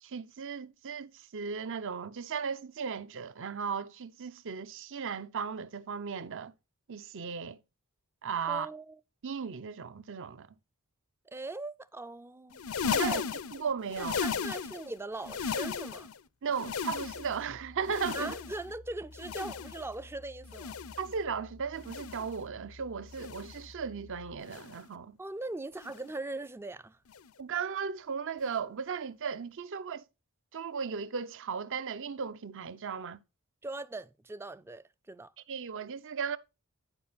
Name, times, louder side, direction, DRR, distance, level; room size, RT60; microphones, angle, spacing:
voice 1, 0.0-6.5 6.9-7.6 8.2-8.7 9.2-10.5 12.8-13.2 13.5-14.4 16.4-18.4 21.0-25.2 27.4-30.0 30.5-33.2 35.5-36.4, right 6 dB, 60° right, 0.6 m, -36 dB
voice 2, 8.4-9.0 11.3-12.6 13.0-13.2 14.0-16.1 18.1-20.7 25.2-27.0 33.6-35.3, right 2 dB, 10° right, 0.3 m, -40 dB
sound 1, 12.5-14.9 15.2-16.2 16.5-17.5 17.8-18.7 19.1-19.9 20.4-21.1 21.8-22.4 23.1-23.7 24.4-24.9 25.8-26.1 27.1-27.3 28.4-28.5, left 6 dB, 70° left, 0.6 m, -36 dB
sound 2, 17.0-24.4, left 2 dB, 90° left, 1.1 m, -53 dB
10.5 x 5.1 x 4.0 m
head